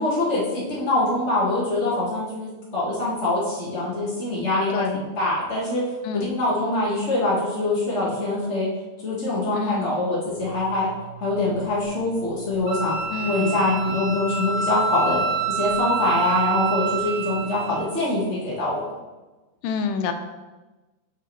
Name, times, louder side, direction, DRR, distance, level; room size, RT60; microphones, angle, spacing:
voice 1, 0.0-4.8 5.2-5.8 6.1-8.7 9.0-10.9 11.2-12.9 13.2-15.2 15.5-18.8, left 2 dB, 65° left, -6 dB, 0.6 m, -24 dB
voice 2, 6.0-6.4 9.5-10.0 13.1-13.6 19.6-20.1, left 6 dB, 90° left, 7 dB, 2.4 m, -27 dB
sound 1, 10.3-17.8, right 8 dB, 90° right, 3.1 m, -44 dB
Wind instrument woodwind instrument, 12.7-17.8, right 4 dB, 75° right, 2.6 m, -27 dB
8.0 x 6.8 x 3.1 m, 1.2 s
omnidirectional pair, 3.9 m